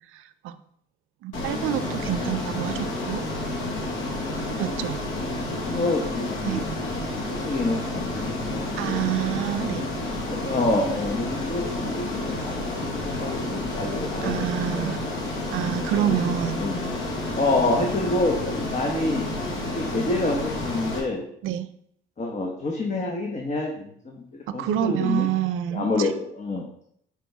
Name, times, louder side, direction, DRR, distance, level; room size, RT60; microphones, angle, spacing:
voice 1, 0.1-0.6 1.2-3.2 4.6-5.0 6.4-6.6 8.8-9.8 14.2-15.0 15.5-16.6 21.4-21.7 24.5-26.1, right 11 dB, 90° right, 12 dB, 0.5 m, -27 dB
Ocean, 1.3-21.0, left 2 dB, 85° left, 1.5 m, -30 dB
voice 2, 5.1-6.6 7.1-9.0 10.2-14.9 16.0-17.0 17.3-19.2 19.7-21.2 22.2-25.3 25.7-26.6, left 2 dB, 35° left, 0 dB, 1.1 m, -28 dB
6.1 x 4.5 x 3.4 m, 0.69 s
cardioid pair, 90°, 20 cm